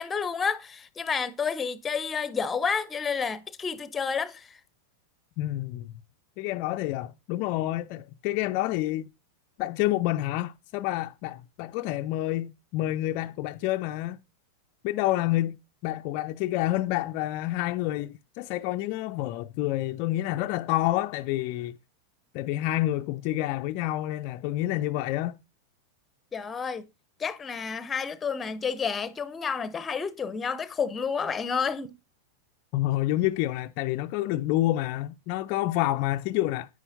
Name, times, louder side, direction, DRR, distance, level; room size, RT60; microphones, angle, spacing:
voice 1, 0.0-4.6 26.3-26.9 27.2-31.9, left 6 dB, 15° left, 0.7 m, -30 dB
voice 2, 5.4-5.9 6.4-9.1 9.6-14.2 14.8-15.6 15.8-21.8 22.3-25.4 32.7-36.7, left 15 dB, 45° left, 0.4 m, -28 dB
9.7 x 9.5 x 2.7 m
figure-of-eight pair, 90°, 0 cm